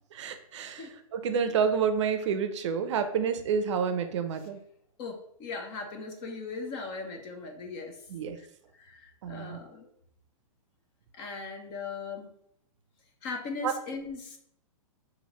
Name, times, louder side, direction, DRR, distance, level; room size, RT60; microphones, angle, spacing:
voice 1, 0.1-4.6 8.1-8.4 9.2-9.6 13.6-13.7, right 6 dB, 55° right, 8 dB, 0.6 m, -29 dB
voice 2, 5.0-8.0 8.4-8.5 8.7-9.9 11.1-12.3 13.2-14.4, left 4 dB, 25° left, 4 dB, 0.6 m, -39 dB
5.5 x 2.7 x 3.0 m, 0.71 s
hypercardioid pair, 150°, 18 cm